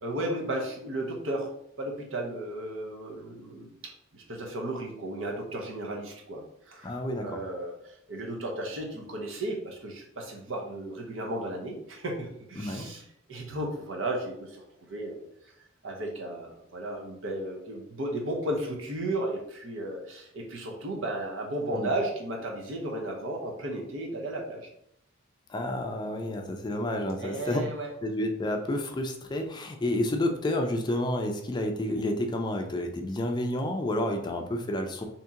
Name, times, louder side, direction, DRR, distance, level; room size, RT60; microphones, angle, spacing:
voice 1, 0.0-1.5 1.8-13.0 13.3-15.2 15.8-24.7 27.2-27.9, right 1 dB, 75° right, 0 dB, 0.8 m, -34 dB
voice 2, 6.8-7.4 12.6-12.9 21.7-21.9 25.5-27.7 28.0-35.1, left 1 dB, 20° left, 4 dB, 0.4 m, -30 dB
2.9 x 2.7 x 3.6 m, 0.74 s
head